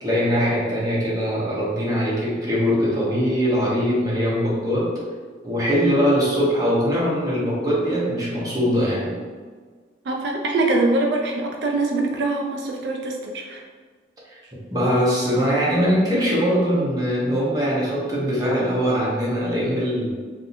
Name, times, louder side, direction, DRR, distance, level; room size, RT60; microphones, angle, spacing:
voice 1, 0.0-4.9 5.4-9.1 14.7-20.1, equal, 20° right, -6 dB, 0.8 m, -21 dB
voice 2, 10.1-13.6, right 2 dB, 80° right, 1 dB, 0.4 m, -23 dB
2.6 x 2.5 x 4.1 m, 1.5 s
head